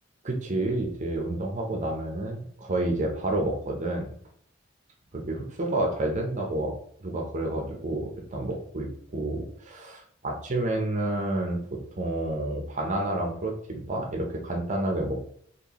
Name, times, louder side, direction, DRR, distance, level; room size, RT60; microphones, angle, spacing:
voice 1, 0.2-4.1 5.1-6.7 7.0-15.2, right 1 dB, 40° right, 1 dB, 0.7 m, -29 dB
4.4 x 3.0 x 2.9 m, 0.64 s
head